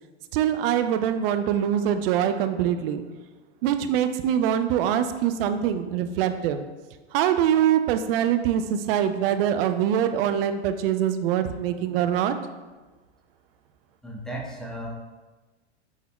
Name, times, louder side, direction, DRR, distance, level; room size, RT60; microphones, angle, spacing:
voice 1, 0.3-3.0 3.6-6.6 7.1-12.4, right 9 dB, 60° right, 10 dB, 0.4 m, -23 dB
voice 2, 14.0-14.9, right 1 dB, ahead, -2 dB, 0.8 m, -35 dB
6.1 x 3.5 x 2.3 m, 1.2 s
hypercardioid pair, 100°, 34 cm